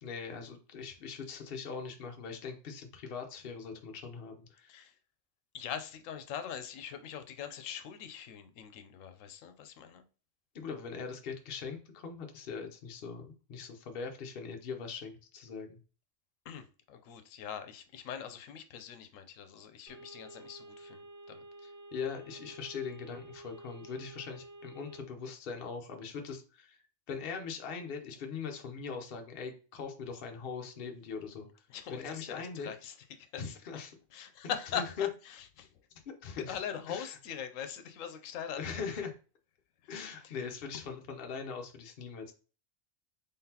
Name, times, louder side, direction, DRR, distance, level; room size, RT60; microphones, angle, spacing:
voice 1, 0.0-4.7 10.5-15.8 21.6-26.8 27.1-31.5 31.9-32.7 33.4-33.9 34.4-35.1 36.1-36.6 36.9-37.1 38.6-39.1 39.9-42.3, left 5 dB, 55° left, 0.8 m, -41 dB
voice 2, 5.5-10.0 16.4-21.4 31.7-33.6 34.1-35.7 36.4-38.8 39.8-39.9 40.2-40.5, left 8 dB, 85° left, 1.0 m, -42 dB
sound 1, 19.9-25.0, right 1 dB, 75° right, 1.3 m, -51 dB
3.9 x 3.7 x 2.8 m
omnidirectional pair, 1.3 m